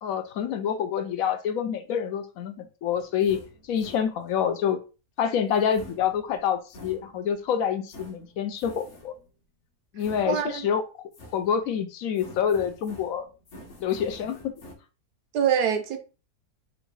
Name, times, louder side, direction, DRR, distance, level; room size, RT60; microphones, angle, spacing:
voice 1, 0.0-3.4 3.7-4.8 5.2-9.2 9.9-10.8 11.3-13.3 13.8-14.5, left 8 dB, 70° left, 0.9 m, -27 dB
sound 1, 3.0-4.5 5.5-7.4 7.9-9.3 10.0-10.8 11.1-11.8 12.2-14.7, equal, 50° left, 1.2 m, -48 dB
voice 2, 10.3-10.7 15.3-16.0, right 8 dB, 75° right, 1.3 m, -24 dB
3.8 x 2.6 x 4.6 m
omnidirectional pair, 1.7 m